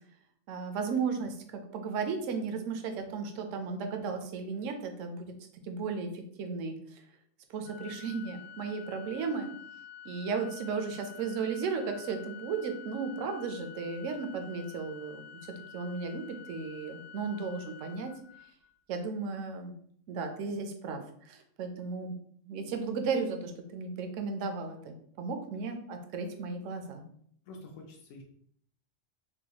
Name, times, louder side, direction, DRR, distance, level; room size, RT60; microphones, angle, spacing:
voice 1, 0.5-5.3 5.6-6.8 7.5-9.5 10.0-18.1 18.9-19.8 20.1-22.1 22.4-27.0, right 5 dB, 75° right, 5 dB, 0.9 m, -35 dB
Organ, 7.6-18.7, left 10 dB, 45° left, 0.8 m, -49 dB
voice 2, 27.4-28.2, left 2 dB, 75° left, 0 dB, 1.0 m, -47 dB
3.9 x 2.2 x 2.8 m, 0.64 s
omnidirectional pair, 1.4 m